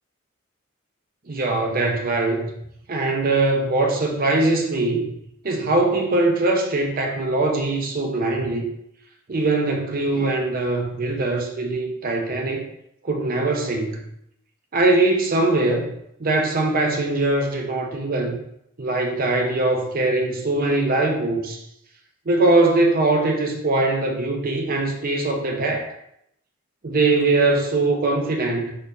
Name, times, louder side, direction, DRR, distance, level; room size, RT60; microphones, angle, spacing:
voice 1, 1.3-2.5 2.9-5.1 5.4-8.7 9.3-12.7 13.0-14.1 14.7-15.8 16.2-18.4 18.8-21.6 22.3-25.9 26.8-28.8, right 2 dB, 45° right, 2 dB, 0.6 m, -21 dB
4.3 x 3.3 x 2.7 m, 0.76 s
head